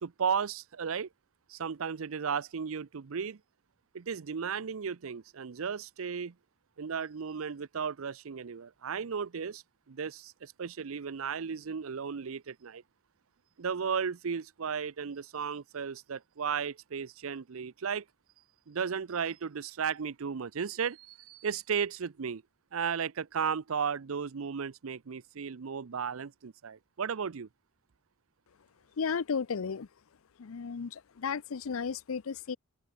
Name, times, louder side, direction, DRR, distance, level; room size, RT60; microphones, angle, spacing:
voice 1, 0.0-1.1 1.5-3.4 3.9-6.3 6.8-9.6 9.9-12.8 13.6-18.0 18.7-22.4 22.7-27.5, right 6 dB, 80° right, 0.6 m, -35 dB
voice 2, 29.0-29.9 30.4-32.6, left 6 dB, 80° left, 0.6 m, -34 dB
head